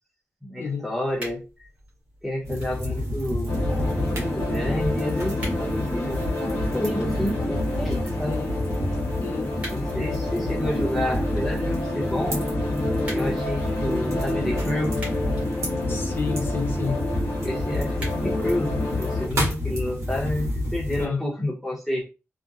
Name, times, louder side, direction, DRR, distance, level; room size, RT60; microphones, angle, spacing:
voice 1, 0.4-1.5 2.2-8.4 9.7-12.4 13.1-15.0 17.4-22.1, left 1 dB, ahead, 0.9 m, -30 dB
sound 1, 1.0-20.0, equal, 30° right, 1.3 m, -47 dB
sound 2, 2.4-21.1, left 1 dB, 70° right, 1.0 m, -29 dB
sound 3, 3.5-19.3, left 1 dB, 85° left, 0.9 m, -29 dB
voice 2, 8.3-8.6 9.2-9.5 15.9-17.0 21.0-21.2, left 5 dB, 45° left, 0.6 m, -30 dB
2.7 x 2.2 x 2.4 m
wide cardioid pair, 165°, 5 cm